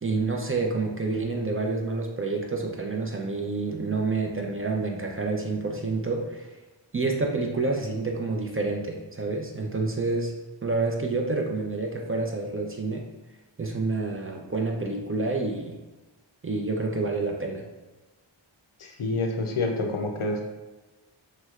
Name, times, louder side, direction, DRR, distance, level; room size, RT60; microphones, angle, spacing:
voice 1, 0.0-6.5 6.9-10.3 10.6-13.0 13.6-15.8 16.4-17.7, right 3 dB, 30° right, 1 dB, 0.4 m, -28 dB
voice 2, 18.8-20.4, left 2 dB, 85° left, 2 dB, 0.6 m, -28 dB
3.1 x 3.1 x 2.3 m, 1.1 s
wide cardioid pair, 45°, 48 cm